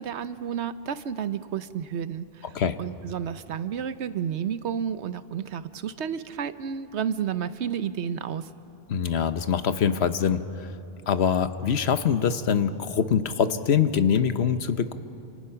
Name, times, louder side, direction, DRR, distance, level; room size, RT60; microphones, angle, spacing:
voice 1, 0.0-8.5, right 8 dB, 85° right, 13 dB, 1.1 m, -31 dB
voice 2, 8.9-10.4 11.1-14.9, left 7 dB, 75° left, 11 dB, 1.1 m, -24 dB
29.0 x 27.5 x 5.8 m, 2.8 s
omnidirectional pair, 1.1 m